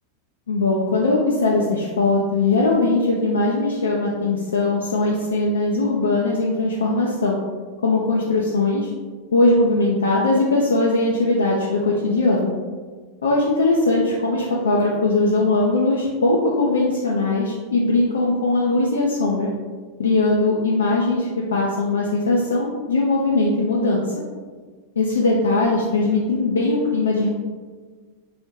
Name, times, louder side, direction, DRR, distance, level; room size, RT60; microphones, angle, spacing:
voice 1, 0.5-7.4 7.8-8.9 9.3-12.5 13.2-19.5 20.0-24.1 25.0-27.3, left 2 dB, 70° left, -3 dB, 0.4 m, -20 dB
3.1 x 2.8 x 2.9 m, 1.5 s
figure-of-eight pair, 90°, 0 cm